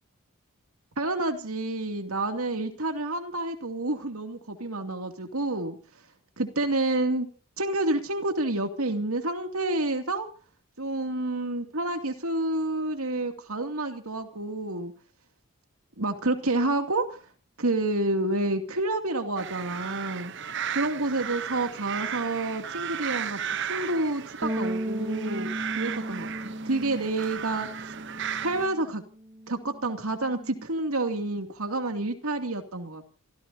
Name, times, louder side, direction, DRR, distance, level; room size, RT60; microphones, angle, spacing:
voice 1, 1.0-5.8 6.4-7.3 7.6-10.3 10.8-14.9 16.0-17.2 17.6-20.3 20.7-23.4 23.7-27.9 28.4-29.0 29.5-33.0, right 2 dB, 75° right, 2.6 m, -29 dB
sound 1, 19.4-28.7, right 8 dB, 55° right, 0.9 m, -35 dB
Bass guitar, 24.4-30.7, right 1 dB, 20° right, 0.9 m, -36 dB
27.5 x 16.0 x 2.8 m
head